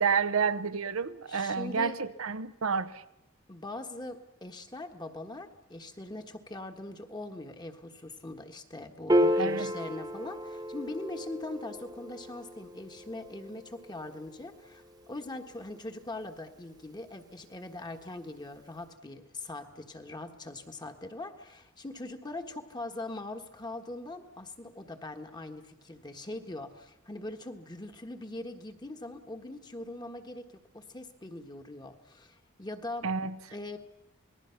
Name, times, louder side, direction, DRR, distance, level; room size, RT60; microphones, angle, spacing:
voice 1, 0.0-3.0 9.4-9.7 33.0-33.3, right 5 dB, 80° right, 0.8 m, -29 dB
voice 2, 1.3-2.0 3.5-30.5 30.7-33.1 33.5-33.8, left 2 dB, 20° left, 1.4 m, -41 dB
Piano, 9.1-15.7, equal, 20° right, 1.2 m, -32 dB
27.5 x 20.0 x 5.8 m
head